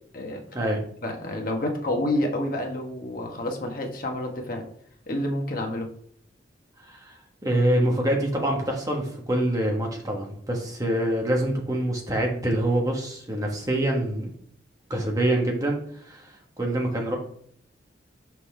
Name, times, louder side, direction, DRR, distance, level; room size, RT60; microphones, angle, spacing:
voice 1, 1.0-4.6 5.1-5.9, left 1 dB, 50° left, 2 dB, 1.3 m, -29 dB
voice 2, 7.4-14.3 14.9-15.8 16.1-17.2, right 1 dB, 20° right, 0 dB, 1.3 m, -25 dB
6.0 x 5.4 x 3.3 m, 0.63 s
head